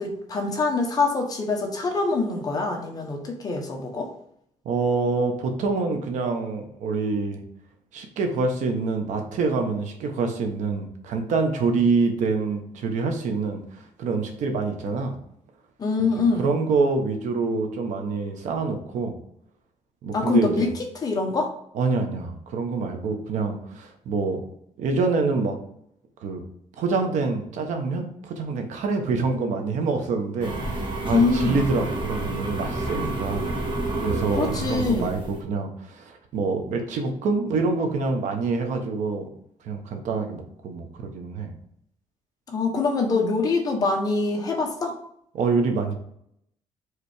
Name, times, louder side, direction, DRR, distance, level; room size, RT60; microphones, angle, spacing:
voice 1, 0.0-4.1 15.8-16.5 20.1-20.7 21.0-21.5 31.1-31.6 34.4-35.1 42.5-44.9, left 3 dB, 30° left, 1 dB, 1.2 m, -24 dB
voice 2, 4.6-7.4 7.9-13.6 14.0-15.2 16.0-19.1 20.0-20.7 21.7-24.4 24.8-25.5 26.2-26.4 26.8-33.5 34.0-39.3 39.6-41.5 45.3-45.9, right 4 dB, 80° right, 4 dB, 1.2 m, -26 dB
sound 1, 30.4-35.4, right 2 dB, 40° right, 1.5 m, -29 dB
5.0 x 4.2 x 4.9 m, 0.71 s
cardioid pair, 155°, 12 cm